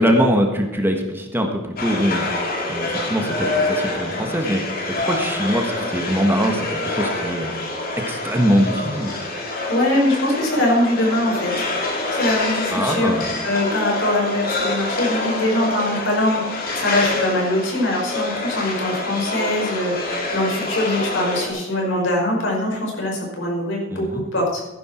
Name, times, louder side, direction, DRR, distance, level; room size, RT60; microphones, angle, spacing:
voice 1, 0.0-2.3 2.7-4.6 5.1-7.6 8.1-9.1 12.7-13.3 23.9-24.2, equal, 10° right, 3 dB, 1.5 m, -22 dB
sound 1, 1.8-21.5, left 2 dB, 50° left, 2.7 m, -26 dB
voice 2, 9.7-11.7 12.1-13.2 13.4-24.6, left 1 dB, 70° left, -1 dB, 5.3 m, -22 dB
15.0 x 11.0 x 4.5 m, 1.1 s
head